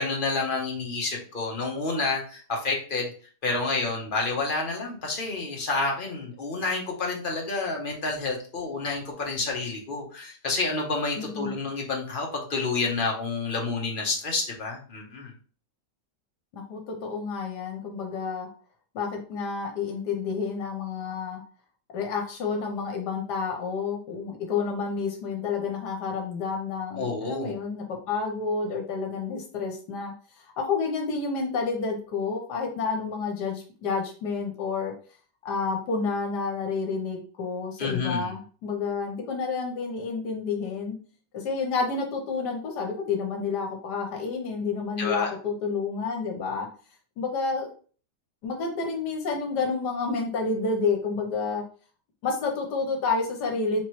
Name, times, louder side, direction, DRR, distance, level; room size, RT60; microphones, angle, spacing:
voice 1, 0.0-3.1 3.4-15.3 27.0-27.5 37.8-38.3 45.0-45.3, left 3 dB, 40° left, 0 dB, 0.8 m, -29 dB
voice 2, 11.1-11.5 16.5-18.5 18.9-21.4 21.9-30.1 30.6-34.9 35.4-41.0 41.3-46.7 47.2-47.7 48.4-51.6 52.2-53.8, left 4 dB, 75° left, 2 dB, 1.4 m, -29 dB
4.2 x 3.0 x 3.0 m, 0.41 s
omnidirectional pair, 1.8 m